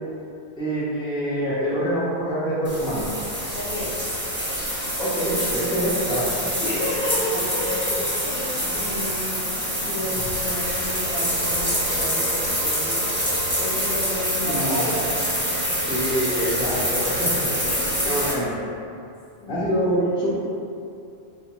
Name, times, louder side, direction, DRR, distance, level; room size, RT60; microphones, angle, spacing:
voice 1, 0.6-3.1 5.0-6.3 14.4-14.9 15.9-17.4 18.0-18.5 19.5-20.3, equal, 5° left, -9 dB, 0.6 m, -25 dB
sound 1, 2.6-18.3, equal, 10° right, 1.0 m, -26 dB
voice 2, 3.5-4.0 6.6-9.3 9.8-13.1 13.6-15.2 17.6-18.0 19.4-20.1, left 1 dB, 55° left, -8 dB, 0.9 m, -31 dB
4.2 x 2.2 x 3.0 m, 2.6 s
omnidirectional pair, 1.1 m